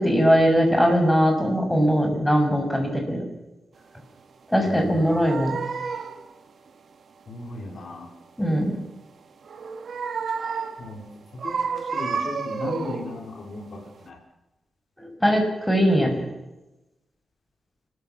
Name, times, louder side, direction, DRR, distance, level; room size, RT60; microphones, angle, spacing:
voice 1, 0.0-3.3 4.5-5.6 8.4-8.8 15.0-16.3, equal, 10° left, 3 dB, 7.1 m, -20 dB
sound 1, 4.6-6.3 9.4-10.9 11.4-13.2 13.7-13.9, right 5 dB, 65° right, 2.0 m, -31 dB
voice 2, 4.7-5.2 7.3-8.1 10.8-14.2, left 2 dB, 65° left, 4 dB, 4.2 m, -36 dB
29.5 x 14.0 x 7.3 m, 0.98 s
cardioid pair, 70°, 0 cm